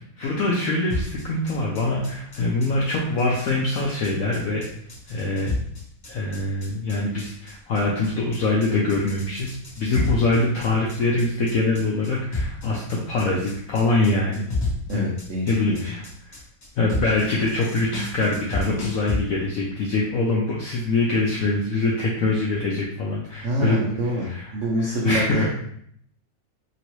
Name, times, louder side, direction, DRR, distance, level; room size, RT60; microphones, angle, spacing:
voice 1, 0.2-4.7 5.1-5.5 6.1-14.4 14.9-15.1 15.5-16.4 16.8-23.8 24.1-24.5 24.8-25.5, left 2 dB, 80° left, -3 dB, 0.7 m, -24 dB
sound 1, 0.9-19.2, left 2 dB, 45° left, 1.0 m, -31 dB
voice 2, 14.9-15.9 23.4-25.5, equal, 80° right, -3 dB, 0.7 m, -26 dB
3.0 x 2.8 x 2.9 m, 0.67 s
omnidirectional pair, 2.0 m